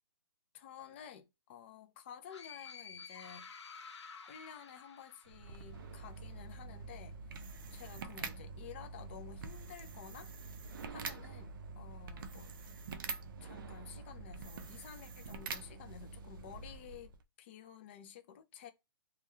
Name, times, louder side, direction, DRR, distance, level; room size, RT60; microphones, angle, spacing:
voice 1, 0.5-3.5 4.3-7.4 7.7-10.3 10.9-12.5 13.4-18.7, left 9 dB, 25° left, 0.4 m, -52 dB
sound 1, 2.3-6.0, left 5 dB, 90° left, 0.8 m, -51 dB
sound 2, 5.2-17.2, right 4 dB, 50° right, 0.4 m, -46 dB
2.2 x 2.2 x 2.9 m
hypercardioid pair, 160°, 14 cm